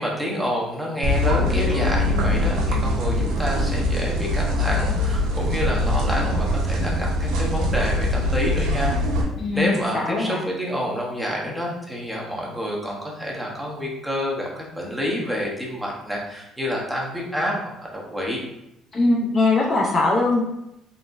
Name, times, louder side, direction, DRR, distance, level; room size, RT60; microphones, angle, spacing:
voice 1, 0.0-8.9 9.5-17.5 17.8-18.4, equal, 5° right, -3 dB, 0.9 m, -28 dB
sound 1, 1.0-9.2, left 1 dB, 85° right, 0.7 m, -22 dB
voice 2, 9.4-10.4 18.9-20.4, left 3 dB, 30° left, -2 dB, 0.6 m, -21 dB
3.9 x 3.4 x 2.5 m, 0.86 s
cardioid pair, 130°, 0 cm